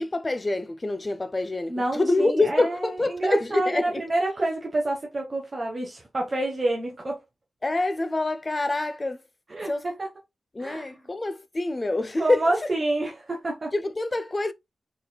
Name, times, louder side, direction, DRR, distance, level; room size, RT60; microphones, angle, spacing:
voice 1, 0.0-4.0 7.6-9.2 9.6-9.8 10.5-12.5 13.7-14.5, left 2 dB, 25° left, 0.4 m, -26 dB
voice 2, 1.7-7.2 9.5-10.1 10.6-10.9 12.2-13.7, right 2 dB, 30° right, 1.0 m, -28 dB
4.1 x 3.9 x 2.2 m
wide cardioid pair, 115°, 0 cm